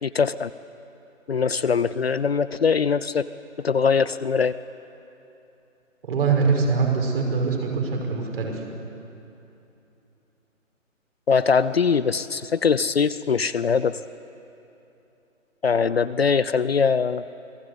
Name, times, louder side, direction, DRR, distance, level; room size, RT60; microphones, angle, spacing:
voice 1, 0.0-0.5 1.3-3.2 3.6-4.5 11.3-14.0 15.6-17.2, left 5 dB, 50° left, 15 dB, 0.7 m, -22 dB
voice 2, 6.1-8.6, right 5 dB, 45° right, 1 dB, 5.8 m, -23 dB
28.0 x 19.5 x 8.3 m, 2.9 s
figure-of-eight pair, 145°, 40 cm